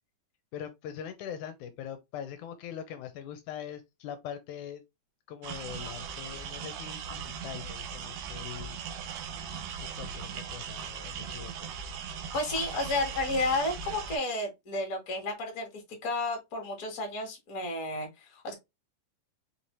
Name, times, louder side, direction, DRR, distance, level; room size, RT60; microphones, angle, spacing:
voice 1, 0.5-4.8 5.3-8.8 9.8-11.7, left 9 dB, 80° left, 2.0 m, -42 dB
sound 1, 5.4-14.2, right 6 dB, 85° right, 1.5 m, -39 dB
voice 2, 12.3-18.5, left 2 dB, 40° left, 1.3 m, -32 dB
5.2 x 2.7 x 3.0 m
omnidirectional pair, 3.7 m